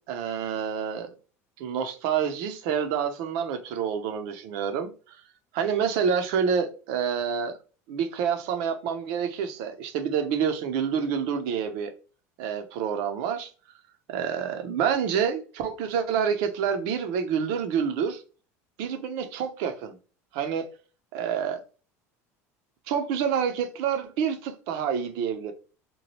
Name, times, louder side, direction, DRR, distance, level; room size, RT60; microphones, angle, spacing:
voice 1, 0.1-1.1 1.6-4.9 5.5-7.5 7.9-11.9 12.4-13.5 14.1-18.2 18.8-20.0 20.3-20.7 21.1-21.6 22.9-25.5, right 7 dB, 70° right, 0.6 m, -28 dB
2.9 x 2.2 x 3.0 m
hypercardioid pair, 90°, 8 cm